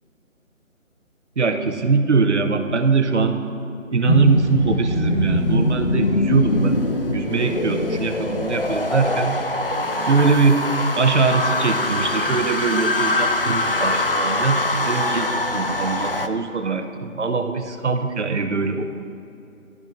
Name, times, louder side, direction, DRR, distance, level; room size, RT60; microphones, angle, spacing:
voice 1, 1.4-3.4 3.9-6.8 7.1-9.4 10.1-10.6 10.9-18.9, right 4 dB, 55° right, 7 dB, 0.8 m, -21 dB
sound 1, 4.0-16.3, left 1 dB, 45° left, 0.4 m, -23 dB
17.0 x 12.0 x 2.6 m, 2.7 s
figure-of-eight pair, 165°, 41 cm